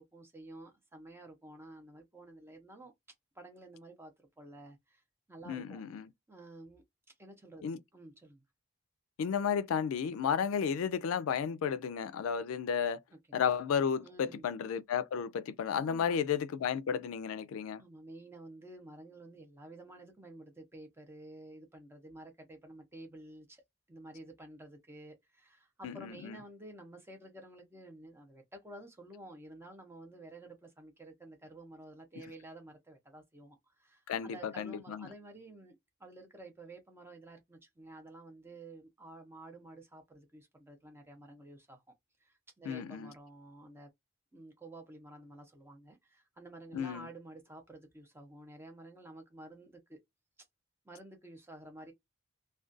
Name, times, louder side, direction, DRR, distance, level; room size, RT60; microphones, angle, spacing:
voice 1, 0.0-2.9 3.3-5.0 5.3-5.8 6.3-8.4 13.1-13.2 14.0-14.5 15.8-16.2 17.8-23.6 23.9-41.8 42.2-43.9 44.3-50.0 50.8-51.9, right 1 dB, 10° right, 0.6 m, -51 dB
voice 2, 5.5-6.1 7.6-7.8 9.2-13.0 13.3-17.8 25.8-26.4 34.1-35.1 42.6-43.1 46.7-47.1, left 7 dB, 80° left, 0.3 m, -33 dB
2.4 x 2.2 x 2.5 m
head